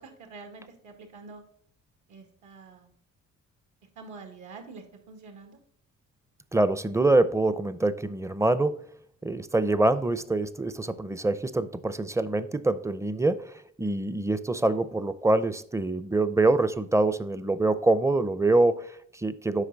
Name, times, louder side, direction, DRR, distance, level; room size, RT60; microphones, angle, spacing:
voice 1, 0.0-1.4 2.1-2.9 4.0-5.6, right 4 dB, 75° right, 4 dB, 2.0 m, -46 dB
voice 2, 6.5-8.8 9.2-19.7, right 2 dB, 10° right, 13 dB, 0.5 m, -25 dB
8.1 x 5.4 x 4.0 m, 0.64 s
cardioid pair, 90°, 30 cm